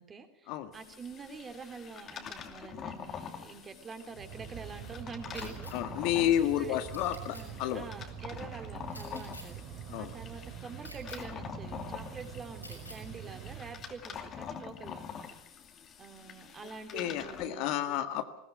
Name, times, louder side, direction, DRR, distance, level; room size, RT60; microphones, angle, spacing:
voice 1, 0.0-5.7 6.1-6.8 7.3-15.3 16.0-18.3, right 4 dB, 20° right, 7 dB, 3.2 m, -46 dB
sound 1, 0.7-17.5, left 7 dB, 30° left, 2.7 m, -46 dB
Mechanical fan, 3.8-14.3, right 9 dB, 40° right, 2.8 m, -45 dB
sound 2, 5.3-5.7 6.9-7.4 8.9-9.4 10.8-11.2 12.6-13.0, left 1 dB, 90° left, 7.0 m, -48 dB
voice 2, 5.7-7.8 9.9-10.1 16.9-18.4, left 11 dB, 50° left, 9 dB, 1.8 m, -31 dB
20.5 x 19.5 x 9.2 m, 0.80 s
figure-of-eight pair, 80°, 0 cm